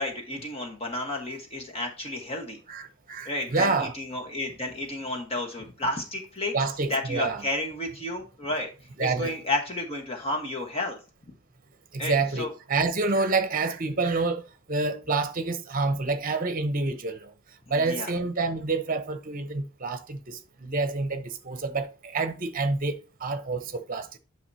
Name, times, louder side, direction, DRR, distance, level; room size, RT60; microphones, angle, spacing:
voice 1, 0.0-2.6 3.2-6.5 6.9-8.7 9.0-11.0 11.3-11.4 12.0-12.5 17.7-18.1, left 2 dB, 30° left, 1.3 m, -31 dB
voice 2, 2.7-3.9 6.5-7.5 9.0-9.3 11.9-14.4 14.7-17.3 17.7-24.1, right 3 dB, 40° right, 0.9 m, -28 dB
9.3 x 5.9 x 2.8 m
head